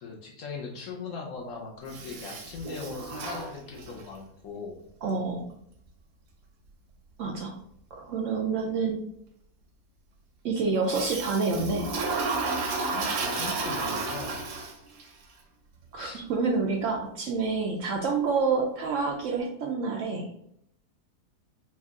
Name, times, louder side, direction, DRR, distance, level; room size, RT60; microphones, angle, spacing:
voice 1, 0.0-4.8 12.9-14.4 16.0-16.3, left 4 dB, 60° left, 0 dB, 1.0 m, -39 dB
Toilet flush, 1.9-4.1 10.9-15.0, right 3 dB, 90° right, 1.3 m, -32 dB
voice 2, 5.0-5.4 7.2-7.5 7.9-9.0 10.4-11.9 15.9-20.3, right 4 dB, 65° right, 1 dB, 0.8 m, -28 dB
4.5 x 2.4 x 3.5 m, 0.71 s
omnidirectional pair, 1.7 m